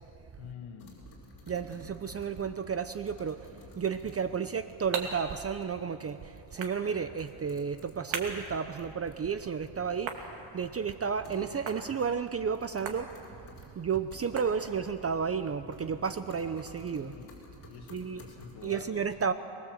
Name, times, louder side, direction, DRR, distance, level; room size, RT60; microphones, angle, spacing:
voice 1, 0.4-1.0 17.0-17.4 17.7-19.3, left 7 dB, 90° left, 1 dB, 1.7 m, -47 dB
sound 1, 0.8-2.7 3.1-4.6 6.1-6.2 6.5-6.6 7.2-8.1 8.5-9.3 11.2-11.9 12.5-13.7 14.1-14.3 15.0-15.4 15.7-18.7, left 3 dB, 55° left, 6.3 m, -53 dB
voice 2, 1.5-3.5 3.8-10.3 10.5-13.1 13.8-17.1 17.9-18.2 18.6-19.3, right 6 dB, 30° right, 10 dB, 0.7 m, -32 dB
sound 2, 4.2-15.1, right 5 dB, 75° right, 2.8 m, -44 dB
23.0 x 22.5 x 7.9 m, 2.7 s
cardioid pair, 135°, 47 cm